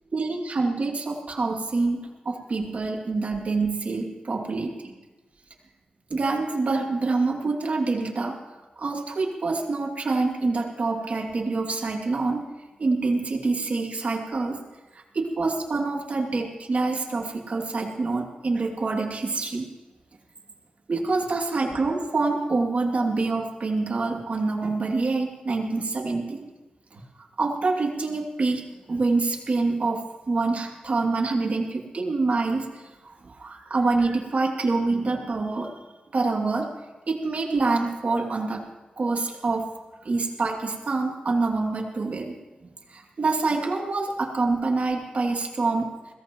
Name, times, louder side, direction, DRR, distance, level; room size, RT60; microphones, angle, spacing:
voice 1, 0.1-4.9 6.1-8.4 8.8-12.5 12.8-14.6 15.1-19.7 20.9-26.5 26.9-27.0 27.4-28.6 28.9-35.7 36.1-36.7 37.1-38.6 39.0-39.7 40.0-42.4 42.6-45.9, right 3 dB, 60° right, 1 dB, 2.6 m, -26 dB
21.5 x 17.0 x 3.1 m, 1.2 s
cardioid pair, 65°, 3 cm